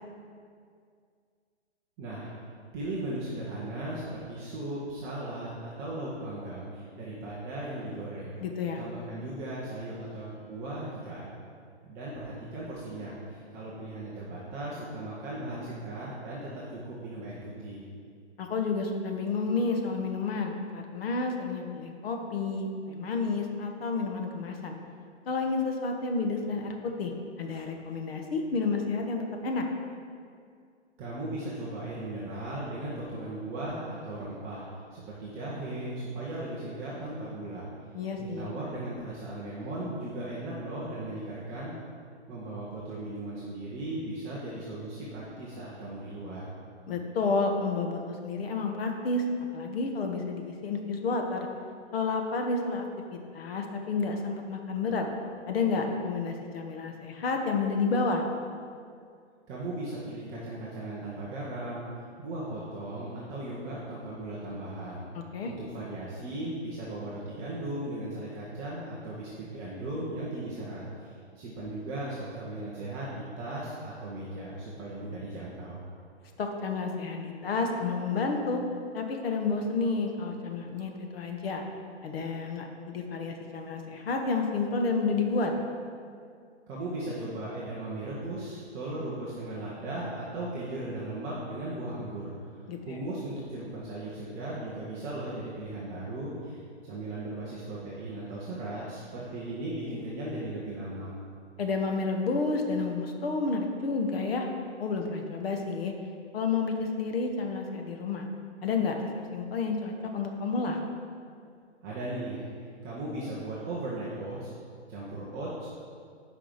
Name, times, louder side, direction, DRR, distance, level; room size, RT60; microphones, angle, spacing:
voice 1, 2.0-2.3 2.7-8.4 8.8-11.4 11.8-17.8 31.0-34.7 34.9-37.7 38.2-41.7 42.3-46.5 59.5-65.0 65.4-75.8 86.7-101.2 111.8-114.5 114.9-115.7, right 1 dB, 10° right, -8 dB, 0.4 m, -37 dB
voice 2, 8.4-8.8 18.4-24.7 25.3-27.1 27.4-29.7 37.9-38.5 46.9-49.2 49.5-51.5 51.9-52.8 53.1-55.1 55.5-58.2 65.1-65.5 76.4-78.6 78.9-81.6 82.0-85.5 92.7-92.8 101.6-104.5 104.8-105.9 106.3-108.3 108.6-110.8, left 4 dB, 55° left, 3 dB, 1.3 m, -30 dB
8.4 x 5.0 x 5.8 m, 2.2 s
hypercardioid pair, 140°, 35 cm